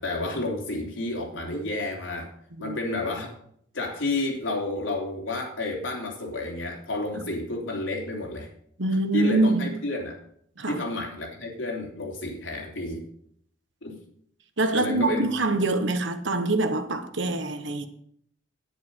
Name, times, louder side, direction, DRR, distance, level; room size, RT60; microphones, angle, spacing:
voice 1, 0.0-2.3 2.6-3.3 3.7-8.5 9.1-10.2 10.7-13.1 13.8-14.0 14.7-15.3, left 2 dB, 85° left, 3.4 m, -30 dB
voice 2, 8.8-9.7 10.6-10.8 14.6-17.9, right 2 dB, 70° right, 1.3 m, -24 dB
10.5 x 9.9 x 5.5 m
head